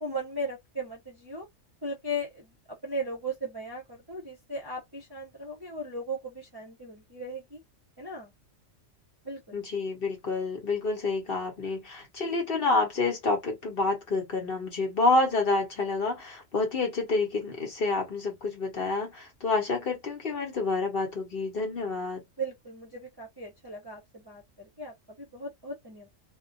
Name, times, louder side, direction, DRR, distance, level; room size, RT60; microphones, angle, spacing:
voice 1, 0.0-1.4 1.8-2.5 2.8-7.6 8.0-8.3 9.2-9.6 22.4-26.1, right 1 dB, 25° right, 0.7 m, -37 dB
voice 2, 9.5-22.2, left 3 dB, 50° left, 1.0 m, -28 dB
2.3 x 2.2 x 2.6 m
omnidirectional pair, 1.3 m